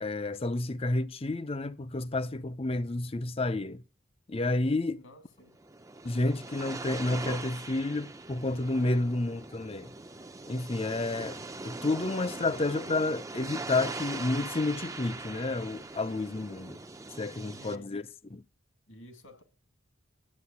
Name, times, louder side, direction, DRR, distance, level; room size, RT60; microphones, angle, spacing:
voice 1, 0.0-3.8 4.3-5.0 6.0-9.9 10.5-16.8 17.2-18.0 18.3-18.4, left 2 dB, 30° left, 0.5 m, -30 dB
voice 2, 4.9-5.6 17.5-18.0 18.9-19.4, left 1 dB, 75° left, 2.2 m, -53 dB
sound 1, 5.5-17.8, right 3 dB, 15° right, 0.6 m, -41 dB
11.5 x 8.8 x 8.4 m
head